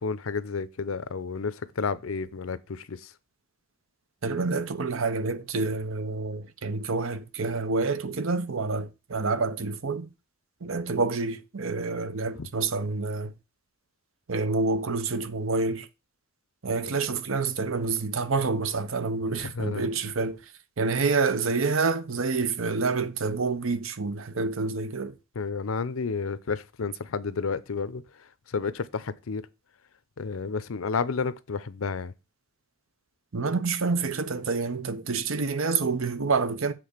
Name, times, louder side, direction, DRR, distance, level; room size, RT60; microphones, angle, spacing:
voice 1, 0.0-3.1 12.4-12.5 19.3-19.9 25.4-28.0 28.5-29.5 30.2-32.1, left 5 dB, 85° left, 0.6 m, -31 dB
voice 2, 4.2-10.1 10.6-13.3 14.3-15.9 16.6-20.4 20.8-25.1 33.3-36.7, right 4 dB, 75° right, 0.8 m, -28 dB
7.7 x 3.8 x 6.5 m
head